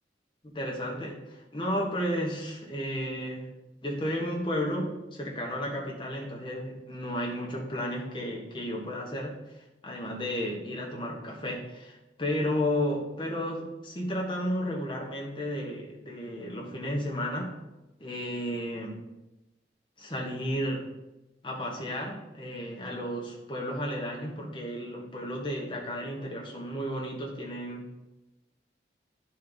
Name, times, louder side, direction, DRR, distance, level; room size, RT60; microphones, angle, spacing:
voice 1, 0.4-3.5 3.8-9.4 9.8-17.5 18.0-19.0 20.0-20.9 21.4-27.9, equal, 25° left, -1 dB, 1.3 m, -33 dB
10.5 x 4.2 x 3.9 m, 0.99 s
head